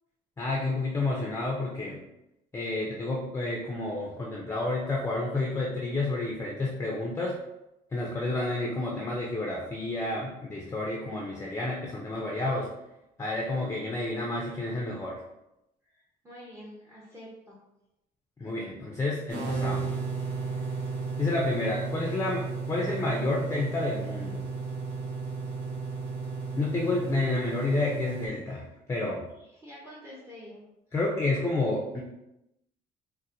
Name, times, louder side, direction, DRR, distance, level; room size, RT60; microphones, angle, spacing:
voice 1, 0.4-2.0 2.5-7.4 7.9-12.7 13.2-15.2 18.4-20.0 21.2-24.4 26.6-29.2 30.9-32.0, left 2 dB, 15° left, -2 dB, 0.5 m, -30 dB
voice 2, 15.8-17.6 29.4-31.0, equal, 15° right, -5 dB, 0.8 m, -48 dB
sound 1, 19.3-28.3, right 4 dB, 80° right, 1.1 m, -34 dB
4.0 x 2.1 x 2.6 m, 0.89 s
cardioid pair, 110°, 17 cm